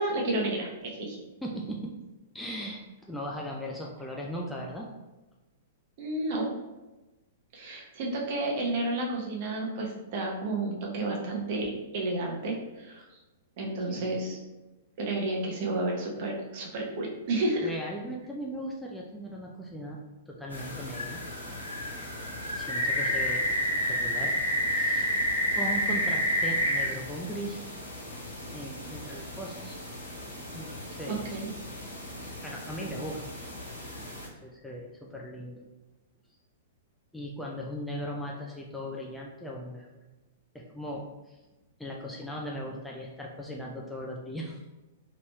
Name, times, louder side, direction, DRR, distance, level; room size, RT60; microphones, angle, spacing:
voice 1, 0.0-1.2 6.0-6.5 7.5-13.0 13.6-14.4 15.0-17.7 31.0-31.5, right 2 dB, 45° right, -1 dB, 0.9 m, -31 dB
voice 2, 1.4-1.9 2.3-4.9 13.8-14.1 14.3-14.4 17.6-21.2 22.5-23.6 23.8-24.3 24.7-25.1 25.6-27.6 28.5-29.8 30.5-31.2 32.4-33.2 33.8-34.0 34.3-35.7 37.1-39.9 40.5-41.4 41.8-44.6, equal, 5° left, -3 dB, 0.4 m, -38 dB
sound 1, 20.5-34.3, equal, 85° left, 1.2 m, -31 dB
3.9 x 3.0 x 2.2 m, 1.1 s
figure-of-eight pair, 105°, 0 cm